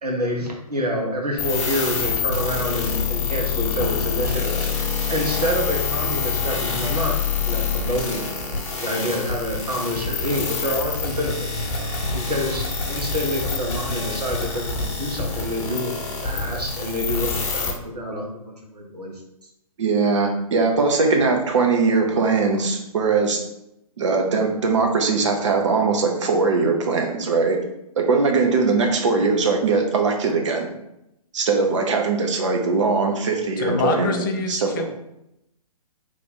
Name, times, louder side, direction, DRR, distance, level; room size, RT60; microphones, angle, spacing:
voice 1, 0.0-7.2 7.4-8.3 8.8-11.5 12.1-15.9 16.2-19.2, equal, 85° right, -1 dB, 1.1 m, -27 dB
sound 1, 1.4-17.7, left 5 dB, 50° left, 1.2 m, -26 dB
voice 2, 19.8-23.4 24.0-27.6 28.0-30.7 31.3-34.8, right 4 dB, 50° right, 3 dB, 0.8 m, -21 dB
voice 3, 33.6-34.8, left 4 dB, 35° left, 4 dB, 0.5 m, -25 dB
3.2 x 2.5 x 4.1 m, 0.83 s
figure-of-eight pair, 130°, 20 cm